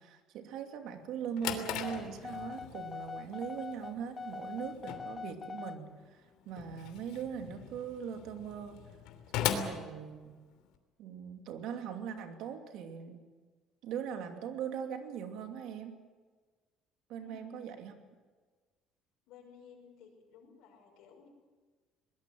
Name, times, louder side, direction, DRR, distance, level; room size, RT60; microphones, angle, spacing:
voice 1, 0.0-8.8 9.3-10.4 11.0-13.2 13.8-16.0 17.1-17.9, right 8 dB, 65° right, 5 dB, 2.7 m, -41 dB
Drawer open or close, 1.0-10.8, left 9 dB, 85° left, 3.0 m, -40 dB
sound 1, 1.8-5.8, left 5 dB, 20° left, 0.6 m, -43 dB
voice 2, 17.2-17.8 19.3-21.3, left 6 dB, 70° left, -1 dB, 6.0 m, -56 dB
22.5 x 20.0 x 7.7 m, 1.4 s
cardioid pair, 170°, 0 cm